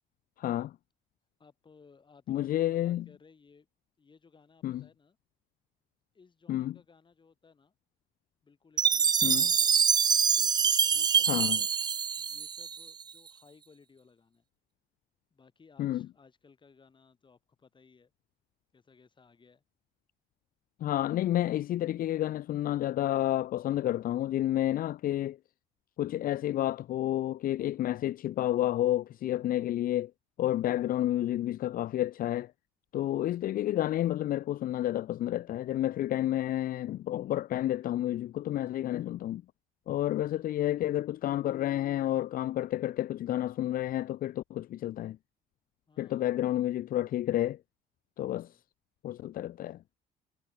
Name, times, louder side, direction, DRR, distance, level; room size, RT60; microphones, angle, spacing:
voice 1, 0.4-0.7 2.3-3.0 4.6-4.8 6.5-6.7 9.2-9.5 11.3-11.6 15.8-16.1 20.8-25.4 26.0-30.1 30.4-32.5 32.9-39.4 39.9-45.2 46.0-47.6 48.2-48.5 49.0-49.8, left 13 dB, 55° left, 0.7 m, -30 dB
voice 2, 1.4-3.7 4.0-5.2 6.1-7.7 8.4-9.6 10.4-10.5 10.8-11.7 12.2-14.4 15.3-18.1 18.7-19.6 40.3-40.6 45.9-46.4 48.2-48.6 49.6-49.7, left 5 dB, 30° left, 5.9 m, -60 dB
Chime, 8.8-13.0, right 7 dB, 25° right, 0.3 m, -25 dB
cardioid pair, 110°, 17 cm